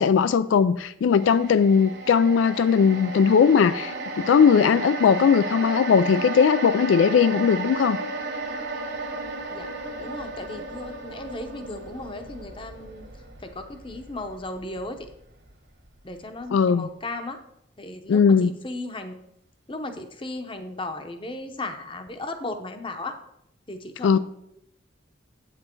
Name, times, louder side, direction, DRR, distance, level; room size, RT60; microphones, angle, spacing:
voice 1, 0.0-8.0 16.5-16.9 18.1-18.6 24.0-24.2, left 6 dB, 80° left, 14 dB, 0.3 m, -19 dB
sound 1, 1.2-15.5 15.9-16.0, right 2 dB, 60° right, 1.6 m, -34 dB
voice 2, 10.0-13.1 13.4-15.0 16.0-17.4 17.8-19.2 19.7-23.2 23.7-24.2, left 2 dB, 25° left, 7 dB, 0.8 m, -36 dB
8.7 x 7.5 x 4.5 m, 0.79 s
head